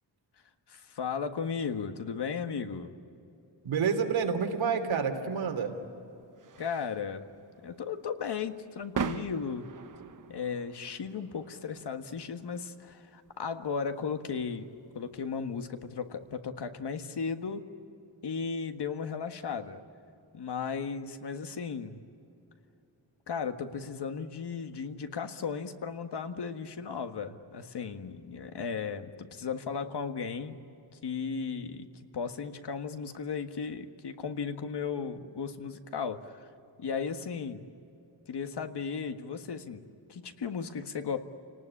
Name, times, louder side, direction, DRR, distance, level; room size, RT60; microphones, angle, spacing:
voice 1, 0.7-2.9 6.6-7.3 7.6-9.7 10.3-14.7 14.9-17.6 18.2-19.8 20.3-22.0 23.3-30.6 31.0-31.9 32.1-36.5 36.8-37.6 38.3-39.8 40.1-41.2, left 6 dB, 60° left, 7 dB, 1.7 m, -35 dB
voice 2, 3.6-5.7, right 6 dB, 85° right, 5 dB, 3.2 m, -28 dB
sound 1, 5.0-16.3, right 6 dB, 45° right, 1.0 m, -43 dB
29.5 x 19.0 x 9.9 m, 2.8 s
wide cardioid pair, 115°, 45 cm